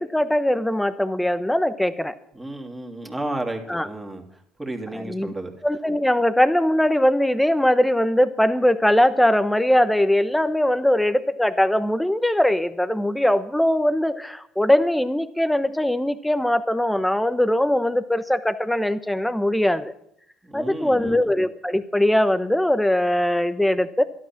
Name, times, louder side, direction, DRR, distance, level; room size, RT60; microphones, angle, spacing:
voice 1, 0.0-2.1 3.7-3.9 4.9-5.3 5.6-19.9 20.5-24.0, left 1 dB, 5° left, 12 dB, 1.1 m, -21 dB
voice 2, 2.3-4.2 4.6-5.5 20.4-21.3, right 1 dB, 15° right, 2 dB, 2.8 m, -32 dB
12.5 x 11.5 x 6.0 m, 0.71 s
hypercardioid pair, 70°, 0 cm